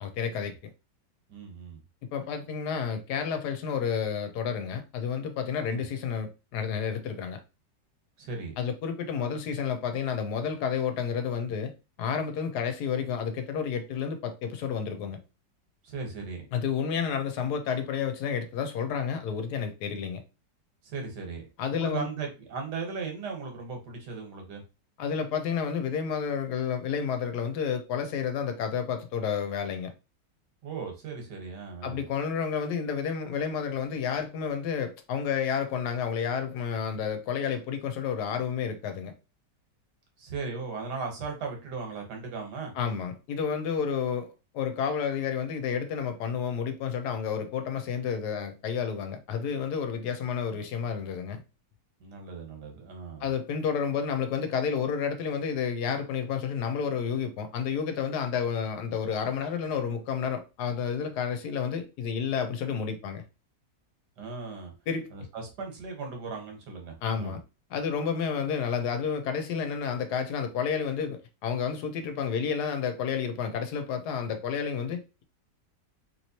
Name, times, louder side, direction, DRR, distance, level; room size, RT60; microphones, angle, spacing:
voice 1, 0.0-0.5 2.1-7.4 8.6-11.7 12.0-15.2 16.5-20.2 21.6-22.1 25.0-29.9 31.8-39.1 42.8-51.4 53.2-63.2 64.9-65.1 67.0-67.4 67.7-75.2, left 7 dB, 70° left, 1.1 m, -30 dB
voice 2, 1.3-1.8 5.6-5.9 8.2-8.5 15.8-16.4 20.8-21.4 21.7-24.6 30.6-32.0 40.2-42.7 52.0-53.3 64.2-64.7 65.1-67.4, right 4 dB, 70° right, 1.6 m, -37 dB
3.1 x 3.1 x 2.7 m
omnidirectional pair, 1.9 m